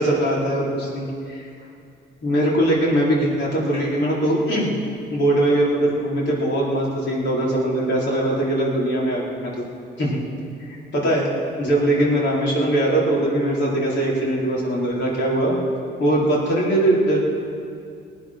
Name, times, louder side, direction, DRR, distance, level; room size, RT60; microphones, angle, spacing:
voice 1, 0.0-1.4 2.2-4.7 5.1-9.6 10.0-10.2 10.7-11.3 11.6-15.5 16.0-17.2, right 1 dB, 65° left, -5 dB, 4.7 m, -21 dB
19.5 x 10.0 x 6.2 m, 2.4 s
cardioid pair, 90°, 20 cm